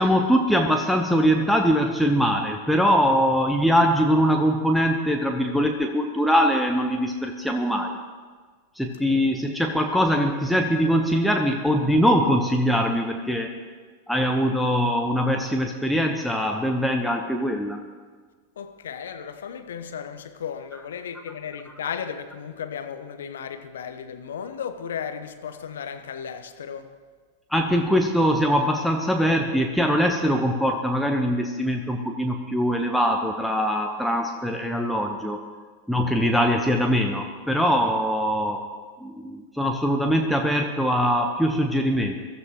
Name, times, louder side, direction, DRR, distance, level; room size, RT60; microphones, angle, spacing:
voice 1, 0.0-8.0 8.7-13.5 14.1-17.8 20.7-20.8 27.5-35.4 35.9-38.6 39.0-42.2, equal, ahead, 1.0 m, -22 dB
voice 2, 18.6-26.9, left 7 dB, 70° left, 1.0 m, -35 dB
22.0 x 14.0 x 3.0 m
figure-of-eight pair, 90°, 0 cm